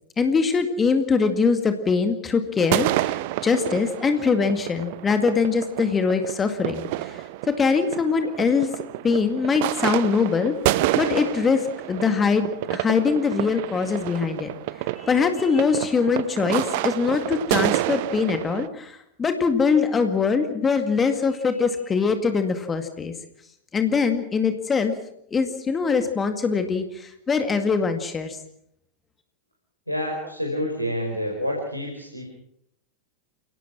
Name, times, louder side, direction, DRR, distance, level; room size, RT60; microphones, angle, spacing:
voice 1, 0.2-3.1 3.4-6.9 7.6-8.7 9.0-10.6 11.0-11.6 11.9-14.5 15.0-18.9 19.2-23.1 23.7-24.9 25.3-26.8 27.3-28.4, left 5 dB, 20° left, 7 dB, 2.1 m, -22 dB
sound 1, 2.6-18.7, right 16 dB, 50° right, 0.9 m, -29 dB
voice 2, 29.9-32.3, equal, 90° left, 0 dB, 5.1 m, -28 dB
29.5 x 18.0 x 6.1 m, 0.74 s
figure-of-eight pair, 90°, 0 cm